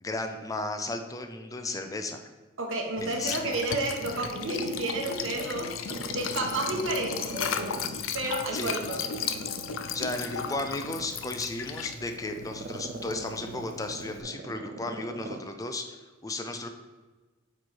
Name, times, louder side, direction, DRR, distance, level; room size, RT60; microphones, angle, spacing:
voice 1, 0.0-2.2 3.0-3.5 8.5-8.7 9.9-16.0 16.2-16.7, left 2 dB, 20° left, 6 dB, 0.4 m, -34 dB
voice 2, 2.6-5.7 6.1-7.8 8.1-9.0, right 2 dB, 90° right, 1 dB, 1.2 m, -31 dB
Liquid, 3.0-14.2, left 7 dB, 90° left, 0.5 m, -36 dB
Growling, 3.1-4.8 5.2-8.2 8.7-15.5 15.8-15.9, right 3 dB, 50° right, 0.5 m, -41 dB
4.8 x 4.6 x 4.2 m, 1.3 s
head